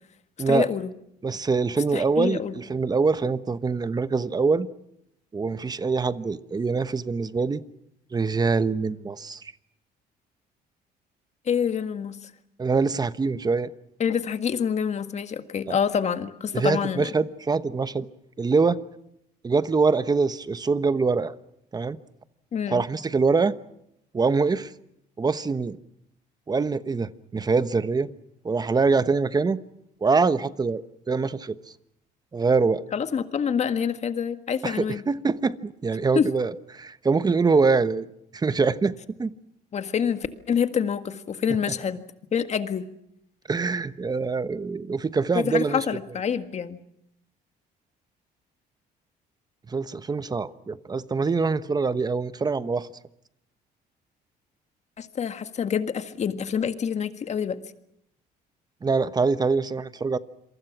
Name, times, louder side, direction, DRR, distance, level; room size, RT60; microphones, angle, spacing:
voice 1, 0.5-0.9 1.9-2.5 11.5-12.3 14.0-17.1 22.5-22.9 32.9-35.0 36.2-36.3 39.7-42.8 45.3-46.8 55.0-57.6, left 7 dB, 40° left, 1.7 m, -27 dB
voice 2, 1.2-4.7 5.3-7.6 8.1-9.5 12.6-13.7 15.7-15.8 16.5-18.1 18.4-18.8 19.4-21.3 21.7-22.0 22.7-23.6 24.1-24.7 25.2-25.8 26.5-28.1 28.4-29.6 30.0-31.6 32.3-32.8 34.6-38.1 38.3-39.3 41.7-41.8 43.5-45.8 49.7-52.9 58.8-60.2, right 4 dB, 25° right, 1.1 m, -24 dB
27.5 x 23.0 x 6.1 m
cardioid pair, 110°, 17 cm